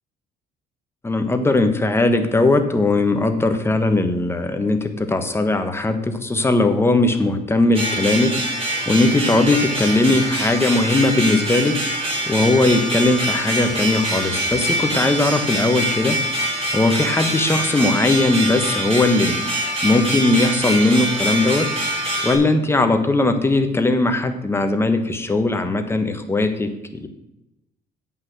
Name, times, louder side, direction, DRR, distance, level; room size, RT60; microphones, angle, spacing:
voice 1, 1.0-8.3 8.9-11.8 12.3-16.2 16.7-19.4 19.8-21.7 22.2-27.1, left 2 dB, 15° left, 7 dB, 1.2 m, -19 dB
sound 1, 7.7-22.4, right 1 dB, 35° right, 3.4 m, -24 dB
8.2 x 5.7 x 7.8 m, 0.93 s
cardioid pair, 110°, 17 cm